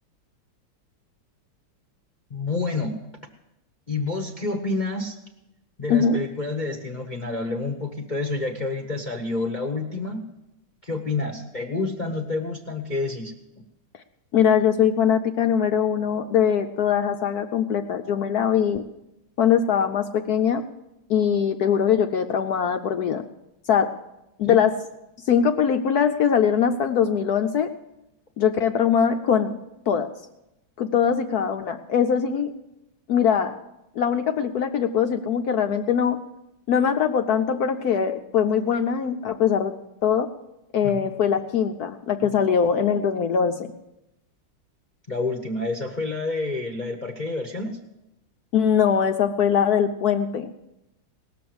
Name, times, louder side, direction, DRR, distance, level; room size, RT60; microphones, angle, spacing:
voice 1, 2.3-3.0 3.9-5.2 5.8-10.2 10.8-13.3 24.5-24.6 40.8-41.1 45.1-47.8, left 3 dB, 30° left, 4 dB, 0.8 m, -28 dB
voice 2, 14.3-18.8 19.4-20.6 21.1-23.2 23.7-23.9 24.4-24.7 25.3-27.7 28.4-29.6 29.9-30.1 30.8-32.5 33.1-33.5 34.0-36.2 36.7-39.7 40.0-40.3 40.7-43.7 48.5-50.6, left 7 dB, 70° left, 7 dB, 0.9 m, -22 dB
19.0 x 6.8 x 7.7 m, 0.91 s
omnidirectional pair, 2.2 m